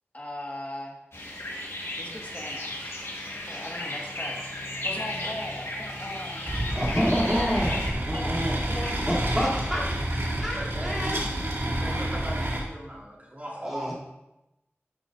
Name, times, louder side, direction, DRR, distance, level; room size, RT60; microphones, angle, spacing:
voice 1, 0.1-1.0 2.0-3.1 3.5-7.2 8.1-9.4, left 1 dB, 35° left, -1 dB, 1.9 m, -39 dB
sound 1, 1.1-7.9, left 1 dB, 70° left, 1.8 m, -35 dB
sound 2, 6.5-12.6, right 1 dB, 65° right, 2.5 m, -29 dB
voice 2, 6.7-8.6 9.0-9.8 10.4-11.2 13.6-13.9, equal, 5° right, -8 dB, 3.3 m, -28 dB
voice 3, 10.5-10.9 11.7-13.9, right 1 dB, 35° right, -5 dB, 3.6 m, -38 dB
12.5 x 7.4 x 2.7 m, 0.93 s
wide cardioid pair, 50°, 5 cm